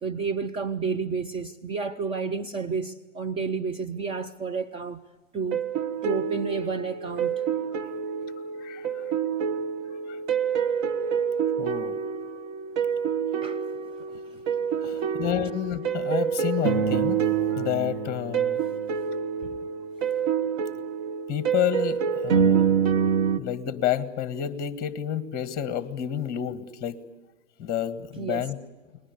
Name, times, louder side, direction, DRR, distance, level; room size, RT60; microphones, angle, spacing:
voice 1, 0.0-5.0 5.3-5.6 6.0-7.5 13.4-13.6 14.3-14.4 14.8-15.1 19.4-19.6 28.2-28.5, right 5 dB, 15° right, 0.7 m, -31 dB
sound 1, 5.5-23.4, right 7 dB, 35° right, 1.5 m, -27 dB
voice 2, 8.6-9.0 10.1-10.2 11.6-11.9 14.8-18.6 21.3-22.6 23.4-27.0 27.6-28.6, left 10 dB, 25° left, 1.7 m, -30 dB
29.5 x 20.5 x 8.3 m
figure-of-eight pair, 115°, 37 cm